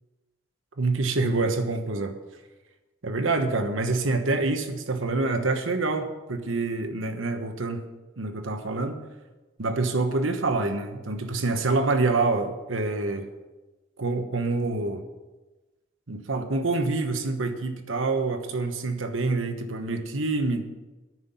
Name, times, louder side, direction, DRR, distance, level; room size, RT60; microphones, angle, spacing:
voice 1, 0.8-2.1 3.0-7.8 8.2-9.0 9.6-13.3 14.0-15.0 16.1-20.6, right 3 dB, 90° right, 7 dB, 1.2 m, -26 dB
9.5 x 5.9 x 8.5 m, 1.1 s
head